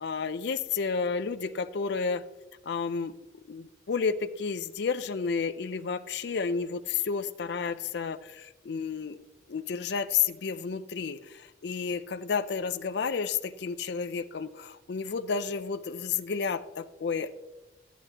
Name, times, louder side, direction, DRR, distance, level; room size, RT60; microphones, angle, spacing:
voice 1, 0.0-2.2 2.7-3.1 3.5-9.2 9.5-17.3, left 5 dB, 55° left, 10 dB, 0.4 m, -31 dB
12.5 x 10.0 x 2.8 m, 1.0 s
head